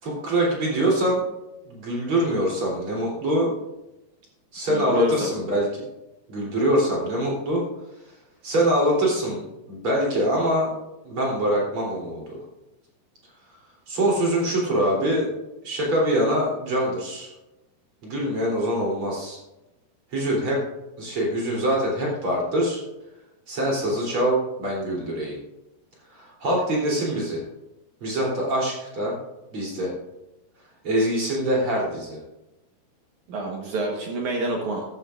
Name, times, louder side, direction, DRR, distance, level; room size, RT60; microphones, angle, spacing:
voice 1, 0.0-1.2 1.7-3.5 4.5-5.8 6.3-7.6 8.4-9.4 9.7-10.7 11.0-12.4 13.9-15.3 15.6-17.3 18.0-19.4 20.1-20.6 21.0-22.8 23.5-25.4 26.1-27.4 28.0-29.2 29.5-29.9 30.8-32.2, right 1 dB, 35° right, -3 dB, 3.8 m, -24 dB
voice 2, 4.7-5.3 33.3-34.8, right 2 dB, 60° right, 0 dB, 2.2 m, -28 dB
14.0 x 12.5 x 2.5 m, 0.96 s
omnidirectional pair, 4.6 m